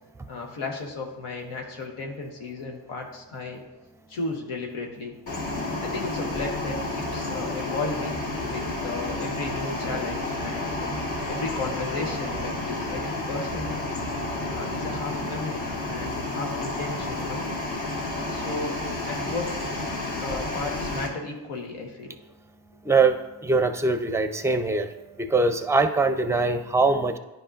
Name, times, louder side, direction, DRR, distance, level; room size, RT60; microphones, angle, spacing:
voice 1, 0.3-3.6 4.1-5.1 5.8-10.9 11.3-13.9 14.5-17.4 18.3-18.8 19.1-19.6 20.2-22.2, left 3 dB, 80° left, 2 dB, 1.1 m, -34 dB
sound 1, 5.3-21.1, left 2 dB, 60° left, 2.5 m, -31 dB
voice 2, 22.9-23.2 23.4-24.9 25.2-27.2, right 3 dB, 5° right, 8 dB, 0.5 m, -22 dB
9.9 x 5.2 x 2.5 m, 1.0 s
supercardioid pair, 45°, 49 cm